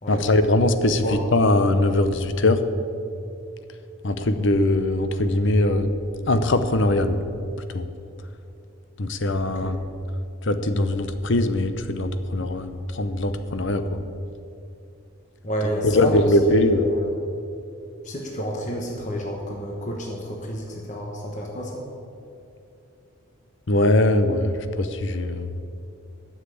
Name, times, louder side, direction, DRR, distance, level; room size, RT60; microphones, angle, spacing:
voice 1, 0.1-2.6 4.0-5.9 6.3-7.2 7.6-7.9 9.0-9.8 10.4-14.0 15.8-16.8 23.7-25.6, left 1 dB, 55° left, 10 dB, 0.7 m, -21 dB
voice 2, 9.4-9.7 15.4-16.1 16.5-17.1 18.0-21.8, equal, 35° left, 0 dB, 1.1 m, -30 dB
9.9 x 7.5 x 8.4 m, 2.6 s
head